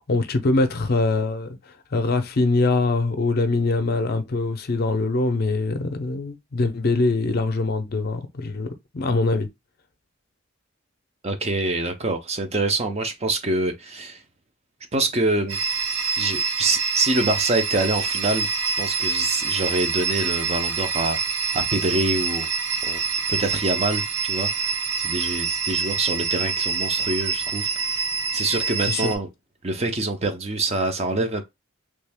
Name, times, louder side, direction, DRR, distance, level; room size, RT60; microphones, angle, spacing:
voice 1, 0.0-8.7 8.9-9.5 28.9-29.1, left 3 dB, 50° left, 0.5 m, -23 dB
voice 2, 11.2-14.2 14.9-15.6 16.2-18.5 18.8-21.2 21.5-22.5 22.8-23.0 23.3-24.5 25.0-27.7 28.3-29.3 29.6-31.4, right 2 dB, 30° right, 0.6 m, -25 dB
sound 1, 15.5-29.2, right 5 dB, 90° right, 0.7 m, -26 dB
3.2 x 2.4 x 3.5 m
head